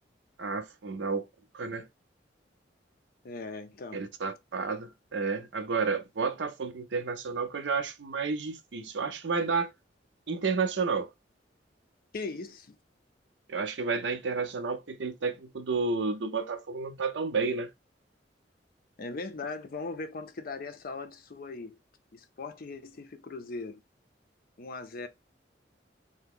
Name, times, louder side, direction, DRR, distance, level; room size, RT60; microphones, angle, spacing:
voice 1, 0.4-1.3 1.5-1.9 3.9-9.7 10.3-11.1 13.5-17.7, right 4 dB, 85° right, 0.6 m, -31 dB
voice 2, 3.2-4.0 12.1-12.8 19.0-21.8 22.1-23.8 24.6-25.1, left 3 dB, 55° left, 0.6 m, -39 dB
2.9 x 2.1 x 3.6 m
head